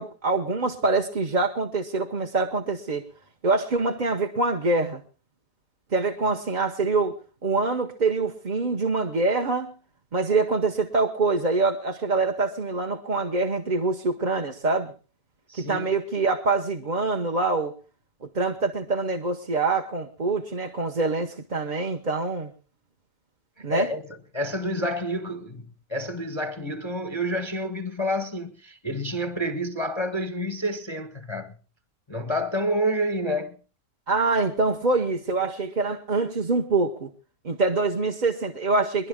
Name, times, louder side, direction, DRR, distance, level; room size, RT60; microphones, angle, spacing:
voice 1, 0.0-3.0 3.4-5.0 5.9-7.1 7.4-9.7 10.1-14.9 15.6-17.7 18.2-22.5 23.6-23.9 34.1-37.1 37.4-39.1, right 3 dB, 35° right, 0.8 m, -25 dB
voice 2, 15.5-15.9 23.7-24.0 24.3-31.5 32.1-33.6, equal, 20° left, 0.7 m, -29 dB
22.0 x 11.5 x 3.6 m
omnidirectional pair, 1.8 m